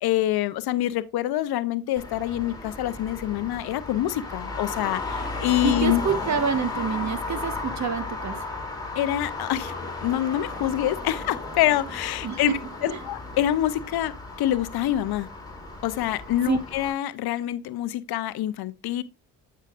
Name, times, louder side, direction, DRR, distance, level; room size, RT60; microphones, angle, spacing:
voice 1, 0.0-6.0 9.0-12.5 12.8-14.1 14.4-15.3 15.8-19.0, left 13 dB, 65° left, 0.7 m, -26 dB
Traffic noise roadway noise, 2.0-16.9, left 3 dB, 10° left, 2.8 m, -34 dB
voice 2, 5.6-8.4 12.2-12.4 12.9-13.0 16.5-16.6, right 6 dB, 45° right, 1.3 m, -27 dB
8.2 x 6.4 x 2.5 m
supercardioid pair, 75°, 41 cm